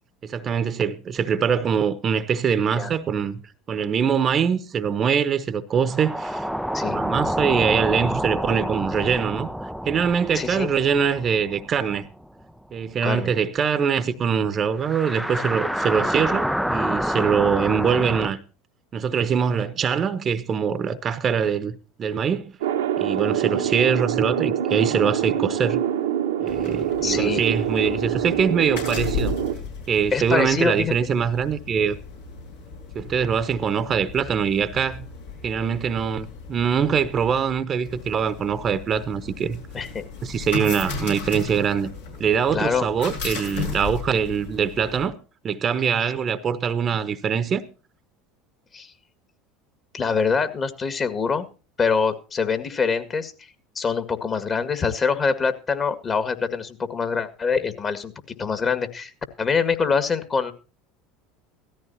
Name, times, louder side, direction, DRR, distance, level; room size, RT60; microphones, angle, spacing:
voice 1, 0.2-3.4 3.7-6.4 6.9-9.5 9.9-12.0 12.7-18.4 18.9-22.5 23.0-25.8 26.4-29.3 29.9-32.0 32.9-35.0 35.4-39.6 40.2-41.9 42.2-45.2 45.4-47.6, right 7 dB, 40° right, 1.0 m, -23 dB
sound 1, 5.8-12.4 12.7-12.8 14.8-18.3, equal, ahead, 0.5 m, -28 dB
voice 2, 10.3-10.7 13.0-13.3 27.0-27.4 30.1-30.9 39.7-40.1 42.5-42.9 48.7-48.9 49.9-51.5 51.8-53.3 53.8-58.1 58.4-59.1 59.4-60.5, left 5 dB, 35° left, 1.9 m, -24 dB
sound 2, 22.6-29.5, right 10 dB, 85° right, 1.3 m, -25 dB
sound 3, 26.5-45.1, left 4 dB, 85° left, 6.4 m, -36 dB
16.5 x 14.0 x 2.8 m
hypercardioid pair, 80°, 0 cm